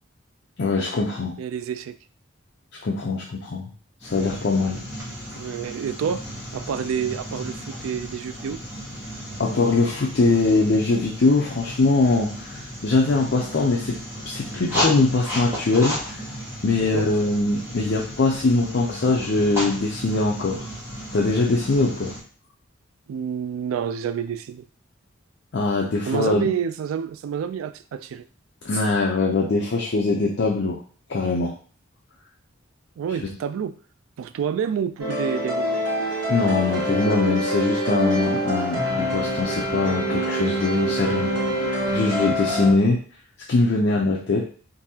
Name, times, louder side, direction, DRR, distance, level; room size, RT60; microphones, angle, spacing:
voice 1, 0.6-1.3 2.8-3.7 4.0-4.8 9.4-14.0 14.3-16.2 16.6-20.6 21.1-22.1 25.5-26.5 28.6-30.8 31.1-31.6 36.3-41.3 41.9-43.0 43.5-44.4, left 3 dB, 55° left, -2 dB, 0.5 m, -22 dB
voice 2, 1.4-1.9 5.4-6.2 6.5-8.6 16.9-17.1 23.1-24.6 26.1-28.2 33.0-33.7 34.2-35.8, right 7 dB, 85° right, 11 dB, 0.3 m, -28 dB
sound 1, 4.0-22.2, equal, 15° right, 1.1 m, -34 dB
sound 2, 35.0-42.7, equal, 65° right, 0.9 m, -25 dB
3.9 x 2.7 x 2.7 m, 0.43 s
head